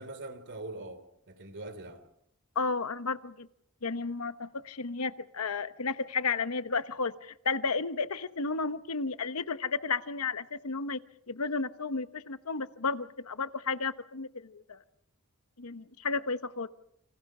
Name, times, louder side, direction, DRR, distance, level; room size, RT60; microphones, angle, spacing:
voice 1, 0.0-2.1, right 2 dB, 55° right, 3.0 m, -43 dB
voice 2, 2.5-3.5 3.8-11.0 11.3-14.8 15.6-16.7, left 4 dB, 80° left, 1.0 m, -33 dB
29.5 x 26.5 x 4.9 m
head